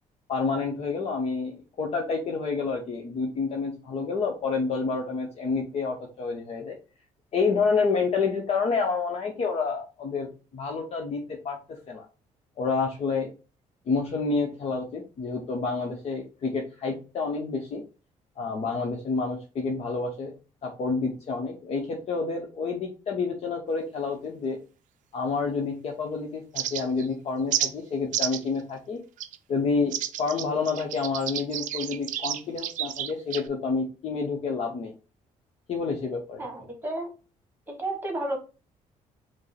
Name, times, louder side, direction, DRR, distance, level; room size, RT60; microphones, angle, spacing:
voice 1, 0.3-6.8 7.3-12.1 12.6-13.3 13.9-17.8 18.4-20.3 20.6-24.6 25.1-29.0 29.5-34.9 35.7-36.4, left 4 dB, 50° left, 1 dB, 0.8 m, -29 dB
sound 1, 26.5-27.1 27.5-27.7 28.1-28.5 29.2-29.4 29.9-33.5, right 11 dB, 70° right, 0.4 m, -30 dB
voice 2, 36.4-37.1 37.7-38.4, right 1 dB, 15° right, 4 dB, 1.2 m, -32 dB
5.1 x 2.0 x 4.2 m, 0.33 s
cardioid pair, 125°, 14 cm